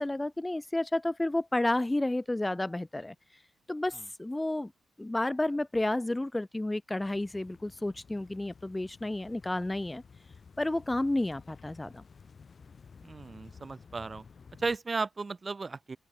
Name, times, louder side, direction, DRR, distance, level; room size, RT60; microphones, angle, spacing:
voice 1, 0.0-3.2 3.7-4.7 5.0-10.0 10.6-12.0, left 1 dB, 20° left, 1.8 m, -31 dB
sound 1, 7.0-14.8, left 5 dB, 55° left, 2.9 m, -54 dB
voice 2, 13.0-14.2 14.6-16.0, right 4 dB, 40° right, 1.8 m, -34 dB
open air
hypercardioid pair, 40°, 0 cm